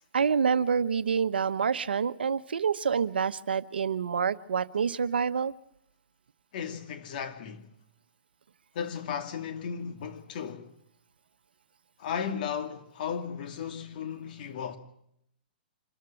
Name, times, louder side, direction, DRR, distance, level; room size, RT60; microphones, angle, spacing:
voice 1, 0.1-5.5, right 6 dB, 85° right, 0.9 m, -27 dB
voice 2, 6.5-7.7 8.7-10.7 12.0-14.8, left 7 dB, 60° left, 2.5 m, -35 dB
26.0 x 13.5 x 9.0 m
hypercardioid pair, 130°, 5 cm